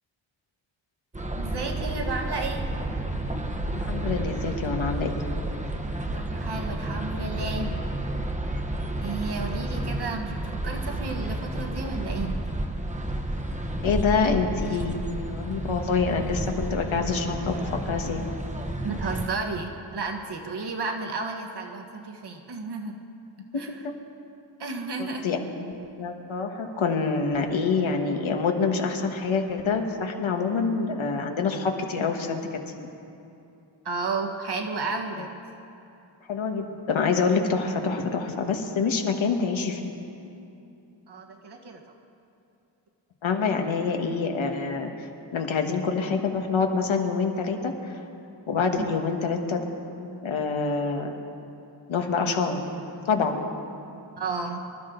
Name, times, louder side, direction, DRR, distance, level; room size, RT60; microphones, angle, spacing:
sound 1, 1.1-19.3, right 1 dB, 15° right, 1.0 m, -31 dB
voice 1, 1.3-2.7 6.1-7.7 9.0-12.4 18.8-23.0 23.6-23.8 24.6-25.3 33.8-35.3 41.1-41.8 48.8-48.9 54.2-54.6, right 3 dB, 55° right, 3 dB, 1.6 m, -32 dB
voice 2, 3.7-5.2 13.8-18.2 25.0-32.4 32.7-32.9 35.2-35.3 36.3-39.9 43.2-44.9 45.3-48.0 48.5-51.1 51.9-52.6 53.0-53.5, left 5 dB, 85° left, 3 dB, 1.6 m, -26 dB
25.0 x 13.0 x 3.9 m, 2.7 s
wide cardioid pair, 120°, 46 cm